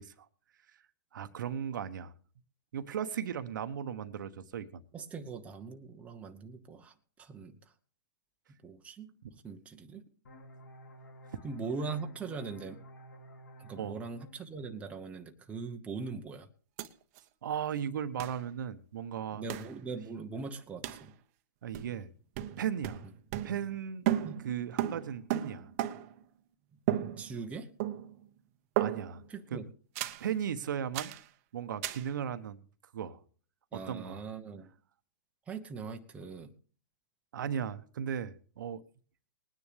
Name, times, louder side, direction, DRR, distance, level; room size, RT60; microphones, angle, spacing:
voice 1, 1.1-2.1 2.7-4.8 9.2-9.3 11.3-11.4 13.8-14.0 17.4-19.4 21.6-22.1 22.6-23.1 23.4-24.1 24.4-25.7 28.8-29.2 29.5-29.6 30.2-31.1 31.5-32.6 32.9-33.2 33.9-34.2 37.3-38.8, right 8 dB, 65° right, 10 dB, 1.1 m, -36 dB
voice 2, 4.9-7.7 8.6-10.0 11.4-12.8 13.6-16.5 19.3-21.1 24.2-24.4 27.2-27.7 29.3-29.7 33.7-34.7 35.5-36.5, right 4 dB, 10° right, 4 dB, 1.0 m, -41 dB
sound 1, 10.2-15.6, equal, 70° left, 2.4 m, -53 dB
sound 2, 16.8-16.9 17.2-17.3 18.2-18.4 19.5-19.7 20.8-21.1 21.7-22.1 22.3-23.8 24.0-26.2 26.9-27.5 27.8-28.3 28.8-29.3 29.9-30.3 30.9-31.2 31.8-32.1, right 12 dB, 40° right, 0.9 m, -34 dB
20.5 x 9.8 x 3.4 m, 0.42 s
hypercardioid pair, 130°, 11 cm